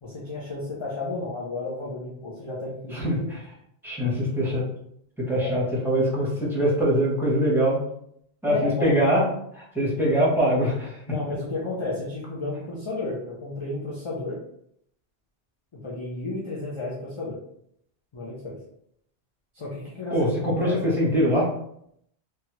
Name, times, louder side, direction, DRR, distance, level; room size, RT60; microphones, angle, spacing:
voice 1, 0.0-3.2 5.4-5.6 8.4-9.0 11.1-14.4 15.7-17.4 18.1-18.6 19.5-20.8, left 2 dB, 35° left, -5 dB, 0.6 m, -32 dB
voice 2, 2.9-3.4 3.8-4.6 5.2-7.8 8.4-9.2 9.5-11.0 20.1-21.5, equal, ahead, -6 dB, 0.9 m, -23 dB
3.1 x 2.3 x 2.9 m, 0.72 s
omnidirectional pair, 1.1 m